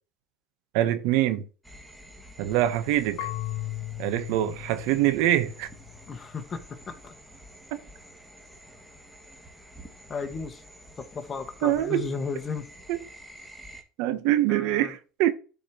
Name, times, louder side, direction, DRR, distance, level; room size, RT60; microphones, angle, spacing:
voice 1, 0.7-1.5 2.4-3.3 4.0-5.7 7.7-7.8 11.6-12.1 12.9-13.0 14.0-15.3, right 13 dB, 75° right, 0.9 m, -24 dB
sound 1, 1.6-13.8, right 1 dB, 5° right, 2.0 m, -49 dB
Marimba xylophone / Wood, 3.2-6.0, left 16 dB, 75° left, 0.5 m, -37 dB
voice 2, 6.1-7.1 10.1-10.6 11.0-12.7 14.1-14.2 14.5-14.9, left 5 dB, 30° left, 1.6 m, -35 dB
12.0 x 4.8 x 3.0 m
supercardioid pair, 100°, 0 cm